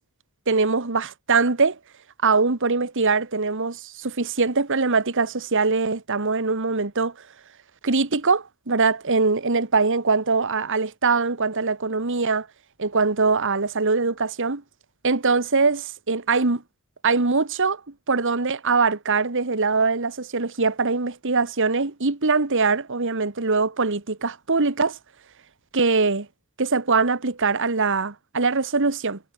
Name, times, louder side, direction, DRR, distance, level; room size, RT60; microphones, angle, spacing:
voice 1, 0.5-1.8 2.2-7.1 7.8-12.5 12.8-14.6 15.0-16.6 17.0-17.8 18.1-25.0 25.7-26.3 26.6-29.2, right 4 dB, 60° right, 1.6 m, -22 dB
head